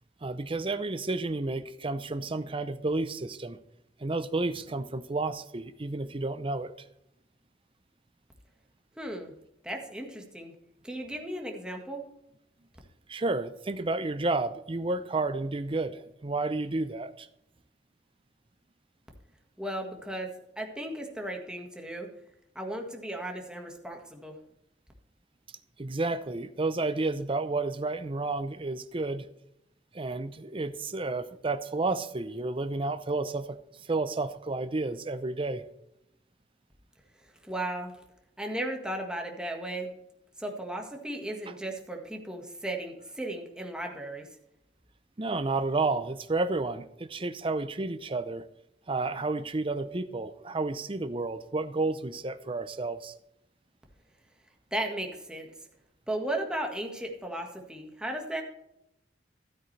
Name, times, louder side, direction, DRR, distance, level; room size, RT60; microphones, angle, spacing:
voice 1, 0.2-3.6 4.0-6.7 13.1-17.3 25.8-29.3 29.9-33.6 33.9-35.6 45.2-48.5 48.9-53.1, right 3 dB, 30° right, 11 dB, 0.7 m, -31 dB
voice 2, 9.0-9.3 9.6-10.5 10.8-12.0 19.6-20.3 20.6-22.1 22.5-24.4 37.4-37.9 38.4-39.9 40.4-44.3 54.7-55.5 56.1-58.4, right 1 dB, 5° right, 1 dB, 1.6 m, -35 dB
13.0 x 8.8 x 3.3 m, 0.81 s
head